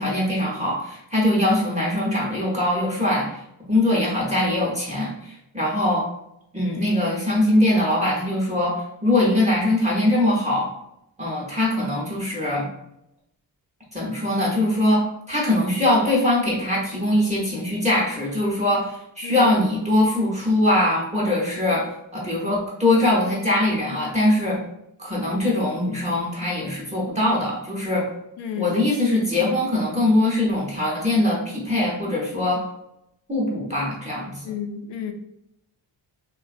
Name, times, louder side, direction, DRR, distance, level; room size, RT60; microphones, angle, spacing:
voice 1, 0.0-3.4 3.7-6.1 6.5-10.7 11.2-12.7 13.9-24.6 25.0-28.1 28.6-32.6 33.3-34.4, left 1 dB, 15° right, -5 dB, 0.8 m, -22 dB
voice 2, 28.4-28.8 34.4-35.1, left 7 dB, 70° left, 6 dB, 0.5 m, -31 dB
2.5 x 2.2 x 2.5 m, 0.82 s
cardioid pair, 70°, 44 cm